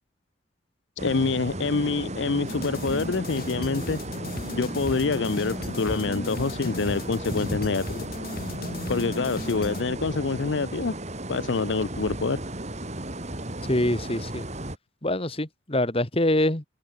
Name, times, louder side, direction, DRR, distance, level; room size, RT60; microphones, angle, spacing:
voice 1, 1.0-4.0 4.5-8.0 8.9-10.9 11.3-12.4, left 4 dB, 85° left, 0.7 m, -26 dB
sound 1, 1.0-14.8, right 1 dB, 40° right, 4.4 m, -35 dB
sound 2, 2.5-9.8, left 2 dB, 55° left, 2.1 m, -36 dB
voice 2, 13.7-14.4 15.0-16.6, left 1 dB, 30° left, 3.1 m, -24 dB
open air
head